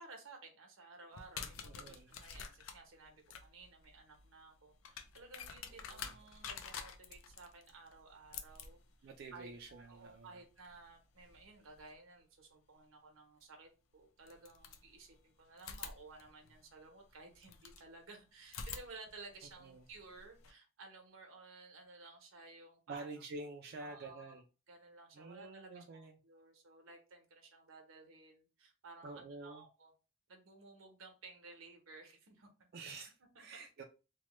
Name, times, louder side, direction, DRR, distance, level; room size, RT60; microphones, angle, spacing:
voice 1, 0.0-8.8 9.3-23.1 23.8-24.4 24.7-29.9 30.3-32.5 33.3-33.4, right 3 dB, 80° right, 3 dB, 0.9 m, -56 dB
sound 1, 1.1-11.9 13.4-13.5 14.2-15.2 15.6-17.9 18.4-20.5, left 6 dB, 75° left, 0.4 m, -50 dB
voice 2, 1.6-2.2 5.7-6.2 9.0-10.4 19.6-19.8 22.9-24.4 25.1-26.2 29.0-29.7 32.7-33.8, right 3 dB, 50° right, 2 dB, 0.3 m, -49 dB
3.0 x 2.1 x 3.0 m, 0.32 s
head